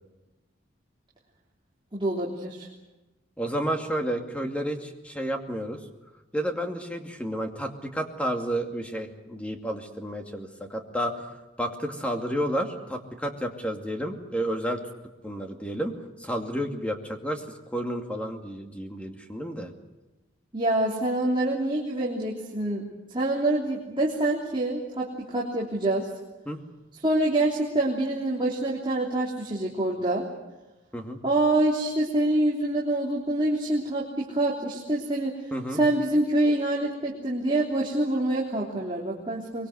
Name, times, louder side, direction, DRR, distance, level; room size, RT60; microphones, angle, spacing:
voice 1, 1.9-2.7 20.5-22.8 23.1-26.1 27.0-30.2 31.2-35.3 35.7-39.7, right 1 dB, 25° right, -3 dB, 3.3 m, -26 dB
voice 2, 3.4-5.8 6.3-11.3 11.6-14.8 15.2-17.4 17.7-19.7 26.5-26.6 30.9-31.2 35.5-35.8, equal, 5° left, 3 dB, 2.4 m, -31 dB
24.0 x 22.5 x 8.0 m, 1.1 s
head